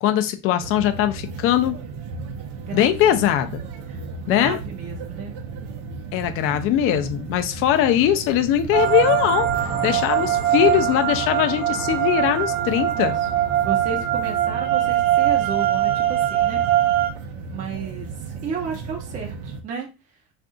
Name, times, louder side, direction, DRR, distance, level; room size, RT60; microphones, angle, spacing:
voice 1, 0.0-1.8 2.7-3.5 4.3-4.6 6.1-9.5 9.8-13.2, left 11 dB, 45° left, 0.5 m, -20 dB
sound 1, 0.6-19.6, right 4 dB, 85° right, 0.7 m, -35 dB
voice 2, 2.5-3.1 3.9-5.4 9.7-10.2 12.9-13.3 13.6-16.6 17.5-19.9, right 5 dB, 30° right, 0.5 m, -33 dB
sound 2, 8.7-17.1, right 12 dB, 60° right, 0.9 m, -22 dB
2.5 x 2.3 x 3.7 m
cardioid pair, 165°, 30 cm